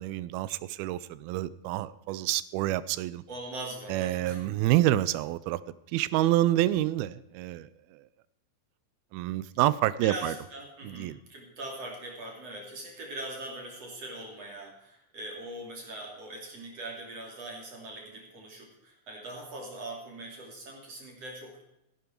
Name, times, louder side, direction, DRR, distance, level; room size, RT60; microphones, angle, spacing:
voice 1, 0.0-3.2 3.9-5.6 5.9-8.0 9.1-10.3 10.8-11.2, right 15 dB, 90° right, 18 dB, 2.5 m, -28 dB
voice 2, 3.3-4.4 10.0-21.6, right 1 dB, 45° right, -1 dB, 3.5 m, -41 dB
15.5 x 11.0 x 4.5 m, 0.85 s
omnidirectional pair, 4.2 m